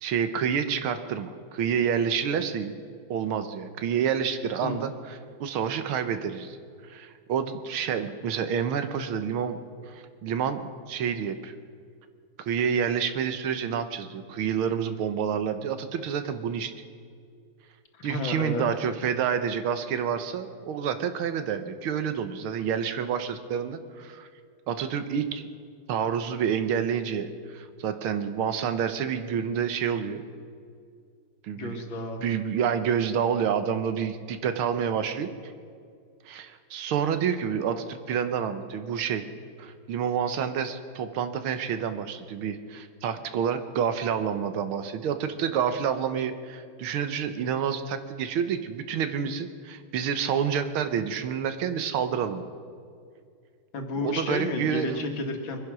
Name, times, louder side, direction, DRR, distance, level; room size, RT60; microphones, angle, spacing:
voice 1, 0.0-2.7 3.1-6.6 6.8-9.6 9.9-10.6 10.9-11.5 12.5-16.7 18.0-24.3 24.7-25.4 25.9-30.2 31.4-31.8 32.2-35.3 36.3-39.3 39.6-52.4 54.0-55.0, right 7 dB, 75° right, 10 dB, 1.8 m, -28 dB
voice 2, 17.9-18.6 31.5-32.2 53.7-55.6, left 2 dB, 65° left, 4 dB, 2.3 m, -31 dB
22.5 x 10.5 x 6.1 m, 2.2 s
omnidirectional pair, 2.4 m